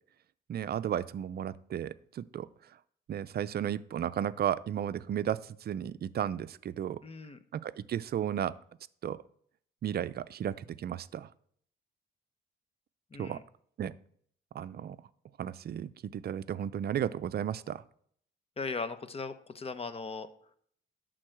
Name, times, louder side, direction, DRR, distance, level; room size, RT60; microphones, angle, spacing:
voice 1, 0.5-2.5 3.1-7.0 7.5-8.5 9.0-9.2 9.8-11.3 13.2-13.4 13.8-13.9 14.5-15.0 15.4-17.8, right 10 dB, 50° right, 15 dB, 0.5 m, -34 dB
voice 2, 7.0-7.4 13.1-13.4 18.6-20.3, left 4 dB, 30° left, 12 dB, 0.9 m, -38 dB
11.5 x 3.9 x 7.8 m, 0.63 s
cardioid pair, 90°, 20 cm